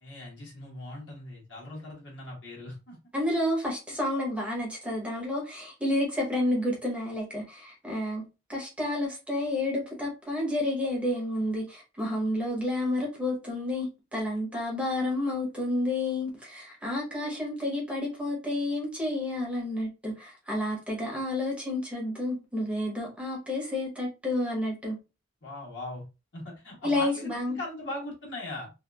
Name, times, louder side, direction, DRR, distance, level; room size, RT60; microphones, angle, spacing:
voice 1, 0.0-3.0 25.4-26.0 26.3-28.7, left 1 dB, 60° left, 1.2 m, -40 dB
voice 2, 3.1-8.2 8.5-25.0 26.8-27.6, left 1 dB, 5° right, 0.7 m, -30 dB
2.6 x 2.4 x 2.2 m
head